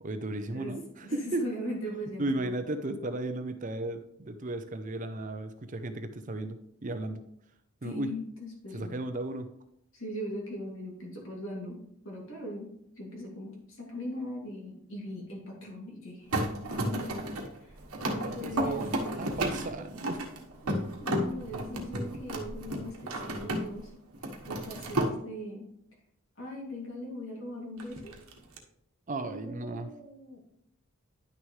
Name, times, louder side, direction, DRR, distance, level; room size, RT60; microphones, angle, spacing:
voice 1, 0.0-1.5 2.2-7.2 7.8-8.1 8.7-9.5 17.1-17.2 18.0-20.3 29.1-29.9, right 2 dB, 35° right, 9 dB, 0.6 m, -35 dB
voice 2, 0.5-2.6 7.8-9.0 9.9-11.8 12.0-12.7 13.0-16.3 16.7-17.3 17.6-17.8 18.0-19.4 20.6-23.9 24.4-25.7 26.4-28.1 29.2-30.4, equal, 60° left, -2 dB, 2.7 m, -40 dB
sound 1, 16.3-23.9 24.1-25.1 27.8-28.6, right 1 dB, 90° right, 1.3 m, -33 dB
10.5 x 6.3 x 3.2 m, 0.75 s
head